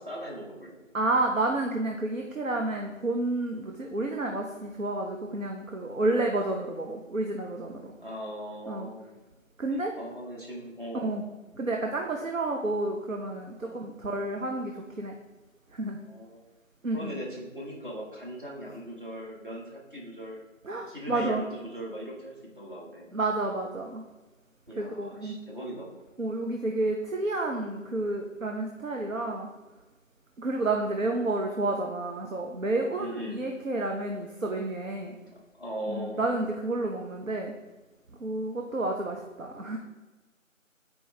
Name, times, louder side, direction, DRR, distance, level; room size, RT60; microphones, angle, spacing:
voice 1, 0.0-0.8 6.0-6.2 8.0-9.1 9.7-11.2 13.6-13.8 16.1-16.5 16.9-20.4 20.9-23.1 24.7-26.0 33.0-33.4 35.6-36.2, equal, 40° right, -2 dB, 1.3 m, -39 dB
voice 2, 0.9-7.9 8.7-8.9 9.6-9.9 10.9-11.2 11.6-15.1 15.7-16.0 16.8-17.2 20.6-21.4 23.1-24.0 24.8-25.4 26.2-29.5 30.4-35.1 35.9-37.5 38.2-39.8, right 2 dB, 75° right, 2 dB, 0.8 m, -30 dB
7.3 x 4.5 x 3.2 m, 1.2 s
figure-of-eight pair, 175°, 40 cm